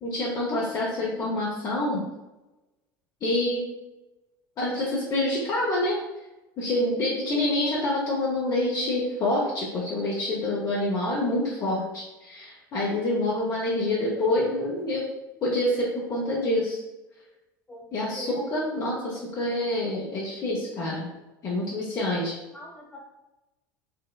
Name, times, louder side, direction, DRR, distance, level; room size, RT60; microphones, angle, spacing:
voice 1, 0.0-2.0 3.2-3.6 4.6-6.0 6.6-15.1 15.4-16.8 17.9-21.1 21.4-22.3, left 1 dB, 35° left, -5 dB, 0.6 m, -27 dB
voice 2, 7.3-7.9 17.7-18.4 21.9-22.2 22.5-23.0, equal, 15° left, -2 dB, 1.0 m, -41 dB
4.5 x 2.0 x 2.2 m, 1.0 s
figure-of-eight pair, 70°, 11 cm